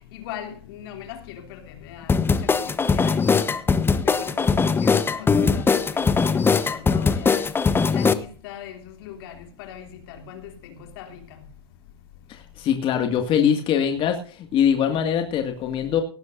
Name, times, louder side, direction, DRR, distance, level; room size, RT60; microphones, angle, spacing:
voice 1, 0.1-3.4 4.0-7.5 7.9-11.4, left 9 dB, 65° left, 3.0 m, -40 dB
sound 1, 2.1-8.2, left 5 dB, 15° left, 1.0 m, -20 dB
voice 2, 12.3-16.0, left 8 dB, 40° left, 2.1 m, -22 dB
18.0 x 14.5 x 2.6 m
hypercardioid pair, 95°, 14 cm